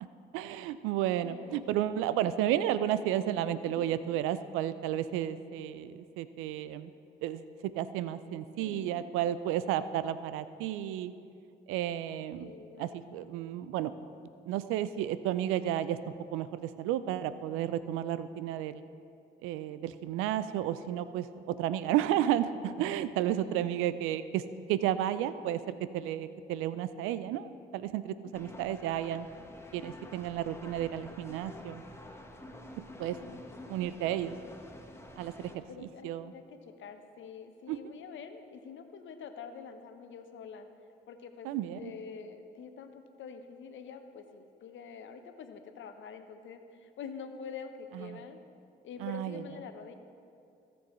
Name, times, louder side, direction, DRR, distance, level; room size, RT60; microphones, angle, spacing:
voice 1, 0.3-6.9 7.2-7.4 7.8-11.1 11.7-12.5 12.8-13.9 14.5-16.0 16.3-18.9 19.4-24.4 24.7-29.3 29.7-31.8 33.0-33.2 33.7-34.3 35.2-36.3 37.7-37.8 41.4-41.9 47.9-48.2 49.0-49.4, right 11 dB, 80° right, 14 dB, 0.5 m, -32 dB
voice 2, 1.2-1.6 3.6-4.0 8.6-9.1 12.4-12.9 23.3-23.7 28.2-28.6 33.1-33.4 34.3-34.5 35.7-40.7 41.1-48.4 48.8-49.9, left 6 dB, 65° left, 7 dB, 1.0 m, -46 dB
sound 1, 28.3-35.6, left 1 dB, 10° left, 1.4 m, -49 dB
17.0 x 7.0 x 3.2 m, 2.5 s
hypercardioid pair, 45°, 21 cm